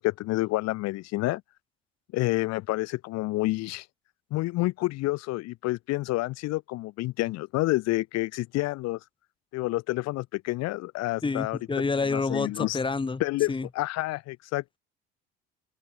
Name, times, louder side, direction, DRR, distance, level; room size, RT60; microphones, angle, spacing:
voice 1, 0.0-1.4 2.1-3.9 4.3-9.0 9.5-11.8 12.1-12.8 13.2-14.8, left 19 dB, 55° left, 1.0 m, -29 dB
voice 2, 11.2-13.2 13.5-13.7, left 4 dB, 15° left, 1.6 m, -28 dB
open air
hypercardioid pair, 65°, 31 cm